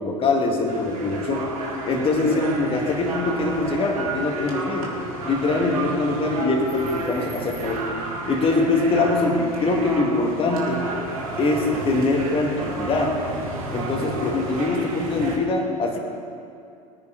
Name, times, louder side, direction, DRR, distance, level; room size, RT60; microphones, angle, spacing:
voice 1, 0.0-1.5 1.8-4.9 5.2-7.8 8.3-10.9 11.4-13.2 13.7-16.0, left 3 dB, 30° left, 1 dB, 2.0 m, -23 dB
sound 1, 0.7-15.4, right 3 dB, 85° right, 2.3 m, -32 dB
18.5 x 9.8 x 3.9 m, 2.4 s
hypercardioid pair, 90°, 18 cm